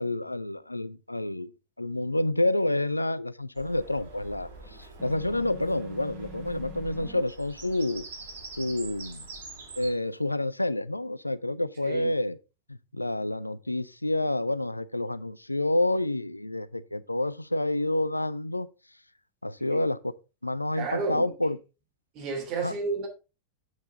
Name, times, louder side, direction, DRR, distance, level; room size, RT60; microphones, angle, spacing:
voice 1, 0.0-1.5 1.8-4.5 4.8-8.0 8.6-9.2 9.8-12.4 12.7-18.7 19.4-20.0 20.4-21.6 22.6-22.8, left 1 dB, 85° left, 0.4 m, -28 dB
Bird vocalization bird call bird song, 3.5-9.9, right 3 dB, 60° right, 2.6 m, -45 dB
sound 1, 5.0-7.2, right 1 dB, 15° right, 1.2 m, -45 dB
voice 2, 20.7-21.2 22.1-23.1, right 4 dB, 40° right, 2.9 m, -31 dB
8.2 x 6.4 x 3.7 m
figure-of-eight pair, 90°, 0 cm